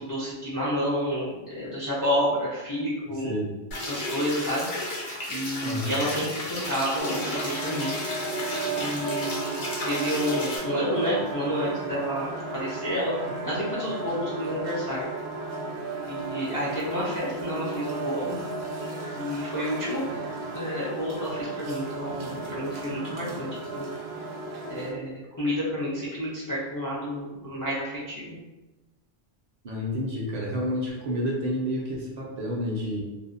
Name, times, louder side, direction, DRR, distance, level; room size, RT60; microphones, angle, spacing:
voice 1, 0.1-3.4 3.8-4.7 5.3-7.9 8.8-9.6 9.8-13.1 13.4-15.1 16.1-18.4 19.2-20.0 20.5-23.9 24.6-28.4, equal, 35° left, -7 dB, 0.3 m, -30 dB
sound 1, 3.7-10.6, left 1 dB, 55° left, 0.7 m, -33 dB
voice 2, 5.6-6.0 29.6-33.0, equal, 55° right, -2 dB, 0.5 m, -29 dB
sound 2, 7.0-24.9, right 3 dB, 80° right, 0.8 m, -34 dB
2.6 x 2.1 x 2.5 m, 1.1 s
omnidirectional pair, 1.1 m